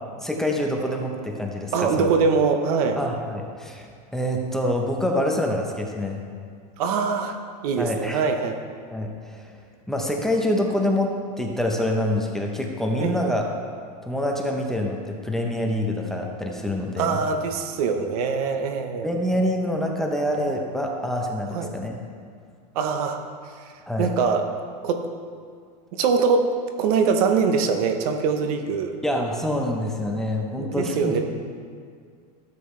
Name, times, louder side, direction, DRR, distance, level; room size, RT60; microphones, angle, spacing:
voice 1, 0.2-2.1 3.0-6.2 7.8-8.2 8.9-9.5 9.9-13.4 14.0-17.1 19.0-22.0 23.9-24.1 29.0-31.1, left 1 dB, ahead, 0 dB, 0.8 m, -26 dB
voice 2, 1.7-3.0 6.8-7.4 7.6-8.6 13.0-13.2 17.0-19.1 21.5-21.7 22.7-23.2 23.6-23.7 24.0-24.4 24.8-25.0 25.9-28.9 30.6-31.2, right 5 dB, 65° right, 6 dB, 1.0 m, -23 dB
13.0 x 7.9 x 3.2 m, 2.1 s
supercardioid pair, 140°, 20 cm